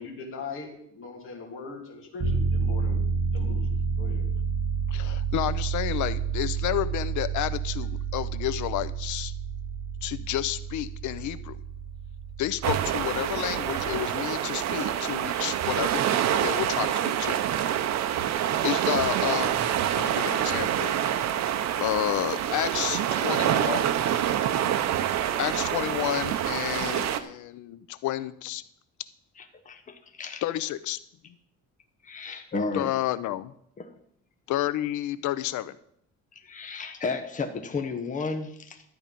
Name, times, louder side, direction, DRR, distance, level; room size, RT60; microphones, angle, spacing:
voice 1, 0.0-3.0 3.3-3.7 4.0-4.2, left 4 dB, 45° left, 0 dB, 3.0 m, -40 dB
sound 1, 2.2-14.1, right 5 dB, 40° right, 1.9 m, -30 dB
voice 2, 4.9-9.3 10.0-11.6 12.4-17.5 18.1-19.6 19.9-20.9 21.8-23.9 25.4-28.6 30.4-31.0 31.2-31.4 32.7-33.5 34.5-35.7, left 14 dB, 80° left, 16 dB, 0.7 m, -30 dB
sound 2, 12.6-27.2, right 10 dB, 65° right, 0.9 m, -26 dB
voice 3, 29.4-30.4 32.0-32.9 33.8-33.9 36.3-38.8, left 4 dB, 25° left, 6 dB, 1.1 m, -33 dB
12.5 x 8.7 x 5.3 m, 0.70 s
cardioid pair, 150°, 29 cm